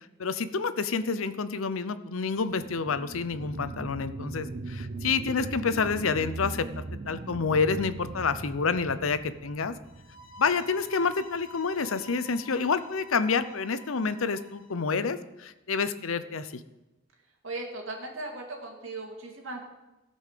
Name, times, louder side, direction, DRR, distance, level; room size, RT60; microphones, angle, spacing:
voice 1, 0.2-6.7 6.9-9.7 10.4-16.6, left 5 dB, 80° left, 13 dB, 0.7 m, -28 dB
sound 1, 2.3-11.4 11.9-12.0, right 2 dB, 45° right, 0.7 m, -40 dB
sound 2, 9.8-14.8, left 1 dB, 65° left, 1.2 m, -50 dB
voice 2, 17.4-19.6, right 2 dB, 75° right, 1 dB, 2.4 m, -37 dB
16.0 x 5.4 x 6.7 m, 1.0 s
head